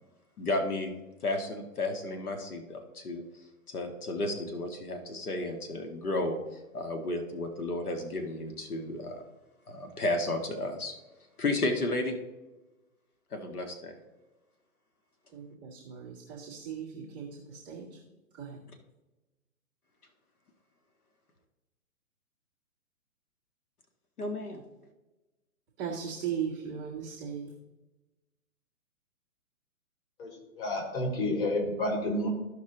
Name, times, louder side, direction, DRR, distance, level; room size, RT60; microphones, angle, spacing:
voice 1, 0.4-0.9 1.2-3.2 3.7-6.4 6.7-9.2 9.7-10.9 11.4-12.2 13.3-14.0 24.2-24.6, left 2 dB, 80° left, 5 dB, 1.8 m, -32 dB
voice 2, 15.3-18.0 18.3-18.6 25.8-27.5, right 7 dB, 10° right, -7 dB, 0.5 m, -38 dB
voice 3, 30.6-32.3, left 1 dB, 40° left, 1 dB, 3.2 m, -30 dB
14.0 x 5.3 x 3.9 m, 1.1 s
hypercardioid pair, 140°, 44 cm